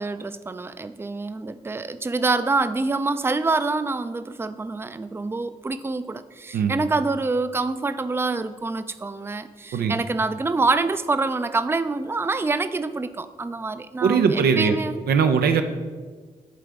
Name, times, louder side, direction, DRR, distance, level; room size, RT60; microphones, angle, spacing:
voice 1, 0.0-15.0, right 3 dB, 15° right, 11 dB, 0.4 m, -26 dB
voice 2, 14.0-14.8 15.1-15.6, right 6 dB, 85° right, 7 dB, 0.5 m, -20 dB
11.0 x 3.8 x 3.5 m, 1.5 s
supercardioid pair, 45°, 16 cm